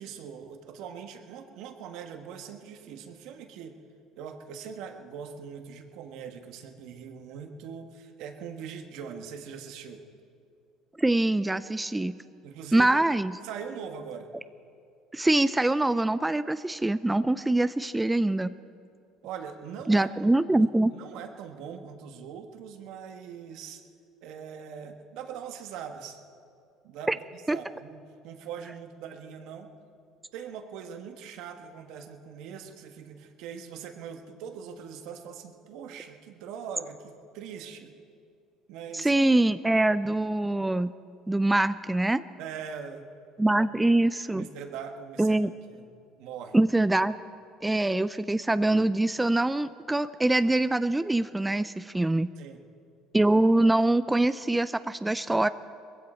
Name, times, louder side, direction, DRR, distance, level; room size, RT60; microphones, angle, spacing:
voice 1, 0.0-3.8 4.1-10.0 12.4-13.0 13.4-14.3 19.2-20.6 20.9-23.8 24.2-26.2 26.8-29.7 30.3-37.9 38.7-39.1 42.4-43.1 43.5-43.6 44.3-45.4 45.7-45.9 46.2-46.6 52.4-52.6, right 7 dB, 70° right, 5 dB, 1.5 m, -41 dB
voice 2, 11.0-12.2 12.7-13.3 15.1-18.5 19.9-20.9 27.1-27.2 27.5-27.6 38.9-40.9 41.3-42.2 43.4-44.5 45.2-45.5 46.5-47.1 47.6-52.3 53.1-55.5, right 2 dB, 10° right, 13 dB, 0.4 m, -24 dB
20.5 x 15.5 x 4.5 m, 2.4 s
supercardioid pair, 85°, 0 cm